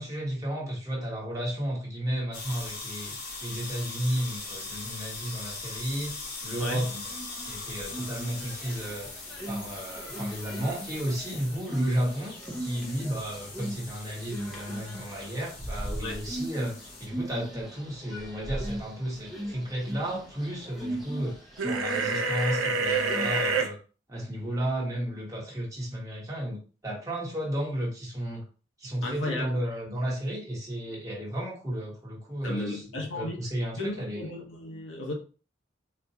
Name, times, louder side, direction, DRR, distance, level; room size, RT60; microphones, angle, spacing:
voice 1, 0.0-6.2 6.4-7.1 7.4-9.1 9.4-12.3 12.6-23.8 24.1-28.4 28.8-34.2, equal, 15° right, -4 dB, 1.1 m, -33 dB
sound 1, 2.3-17.1, left 3 dB, 50° left, 0.9 m, -41 dB
sound 2, 7.1-23.6, right 1 dB, ahead, 0.6 m, -39 dB
sound 3, 21.6-23.7, right 3 dB, 85° right, 0.5 m, -27 dB
voice 2, 29.0-29.6 32.4-33.4 33.8-35.1, left 2 dB, 80° left, 0 dB, 0.9 m, -34 dB
4.2 x 2.2 x 2.7 m, 0.36 s
head